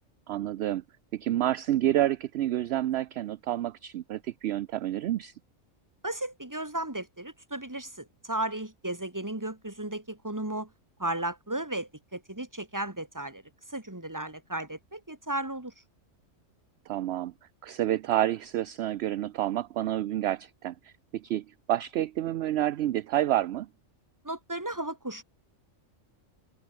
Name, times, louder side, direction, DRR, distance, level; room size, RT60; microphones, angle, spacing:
voice 1, 0.3-0.8 1.1-5.3 16.9-17.3 17.6-23.7, right 13 dB, 65° right, 0.7 m, -29 dB
voice 2, 6.0-10.7 11.0-13.4 13.7-15.7 24.2-25.2, right 1 dB, 15° right, 2.4 m, -34 dB
omnidirectional pair, 1.3 m